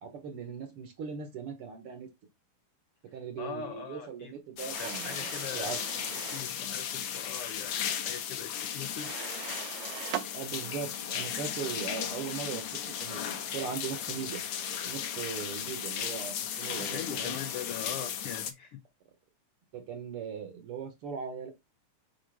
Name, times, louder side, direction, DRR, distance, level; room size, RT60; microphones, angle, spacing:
voice 1, 0.0-2.1 3.0-5.3 5.5-5.8 10.3-12.6 13.0-14.4 14.8-17.4 19.7-21.5, right 6 dB, 60° right, 1.7 m, -39 dB
voice 2, 3.4-4.3 4.8-5.7 6.3-7.8 8.0-9.1 16.8-18.8, left 8 dB, 80° left, 1.3 m, -41 dB
sound 1, 4.6-18.5, left 8 dB, 65° left, 1.5 m, -36 dB
sound 2, 4.7-6.5 9.0-10.3, right 12 dB, 80° right, 1.9 m, -40 dB
6.3 x 5.3 x 3.3 m
omnidirectional pair, 3.5 m